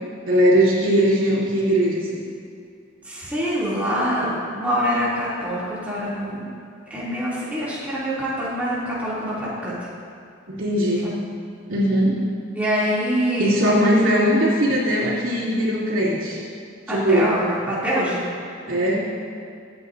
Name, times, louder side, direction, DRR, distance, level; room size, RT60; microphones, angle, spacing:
voice 1, 0.3-2.2 10.5-11.3 11.7-12.1 13.4-16.4 16.9-17.3 18.7-19.0, equal, 85° right, -7 dB, 3.0 m, -20 dB
voice 2, 3.0-6.5 6.9-9.9 11.0-11.1 12.5-13.5 16.9-18.3, equal, 10° right, -9 dB, 2.9 m, -25 dB
22.0 x 8.7 x 2.7 m, 2.4 s
head